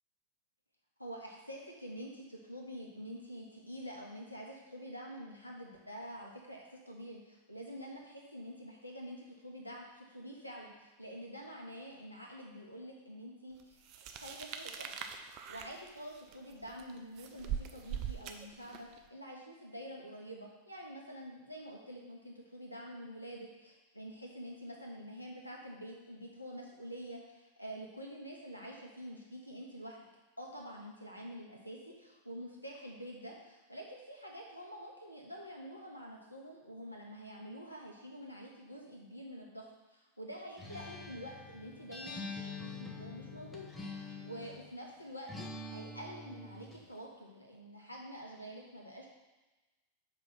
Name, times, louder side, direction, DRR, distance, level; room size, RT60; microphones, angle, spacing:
voice 1, 1.0-13.8 14.1-14.9 15.5-30.1 30.4-49.1, equal, 90° left, -1 dB, 1.3 m, -47 dB
sound 1, 13.9-19.0, right 8 dB, 40° right, 0.6 m, -42 dB
Acoustic guitar, 40.6-44.7 45.3-46.9, left 3 dB, 10° left, 1.3 m, -45 dB
5.5 x 5.1 x 5.7 m, 1.1 s
figure-of-eight pair, 90°, 0 cm